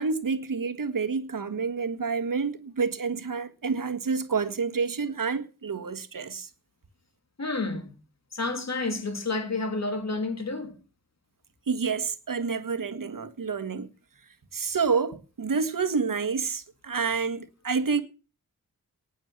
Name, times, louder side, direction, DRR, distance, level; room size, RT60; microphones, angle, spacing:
voice 1, 0.0-6.5 11.7-13.9 14.5-18.0, right 5 dB, 65° right, 1.7 m, -28 dB
voice 2, 7.4-7.9 8.3-10.8, left 3 dB, 45° left, 3.0 m, -30 dB
19.0 x 7.5 x 6.1 m
wide cardioid pair, 135°, 35 cm